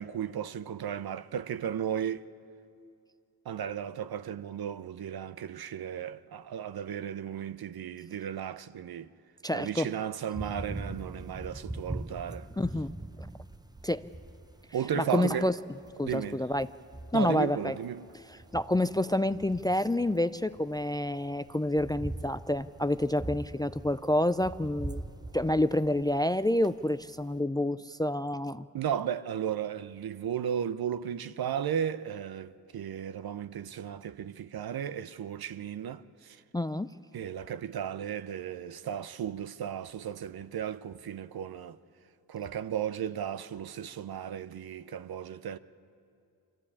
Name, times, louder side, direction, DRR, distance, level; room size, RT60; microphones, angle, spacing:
voice 1, 0.0-2.3 3.5-9.1 9.5-12.5 14.7-15.5 16.0-16.4 17.1-18.1 28.7-36.4 37.1-41.8 42.3-45.6, right 9 dB, 60° right, 0.7 m, -35 dB
voice 2, 9.4-9.9 12.6-12.9 13.8-14.1 15.0-15.6 16.0-16.7 17.1-17.8 18.3-25.0 25.3-28.7 36.5-36.9, left 1 dB, 10° left, 0.4 m, -28 dB
sound 1, 10.3-27.4, right 2 dB, 10° right, 0.8 m, -43 dB
24.5 x 15.0 x 8.5 m
supercardioid pair, 45°, 42 cm